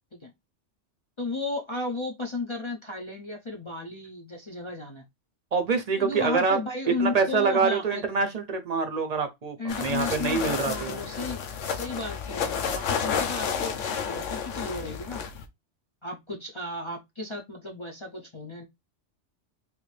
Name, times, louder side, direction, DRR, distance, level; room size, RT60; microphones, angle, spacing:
voice 1, 1.2-5.0 6.0-8.0 9.6-15.3 16.0-18.6, left 2 dB, 35° left, 0.5 m, -34 dB
voice 2, 5.5-6.6 7.0-11.0, right 5 dB, 40° right, 0.6 m, -26 dB
sound 1, 9.7-15.5, left 7 dB, 85° left, 1.0 m, -31 dB
3.3 x 2.6 x 3.2 m
omnidirectional pair, 1.2 m